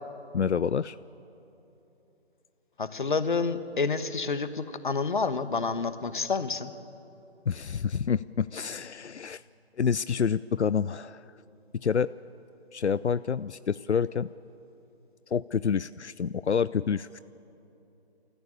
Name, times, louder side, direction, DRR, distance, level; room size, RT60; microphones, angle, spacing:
voice 1, 0.3-1.0 7.5-9.4 9.8-11.2 11.7-12.1 12.7-14.3 15.3-17.2, left 6 dB, 85° left, 17 dB, 0.5 m, -28 dB
voice 2, 2.8-6.7, left 4 dB, 50° left, 12 dB, 1.1 m, -29 dB
28.5 x 14.0 x 8.7 m, 3.0 s
figure-of-eight pair, 150°, 33 cm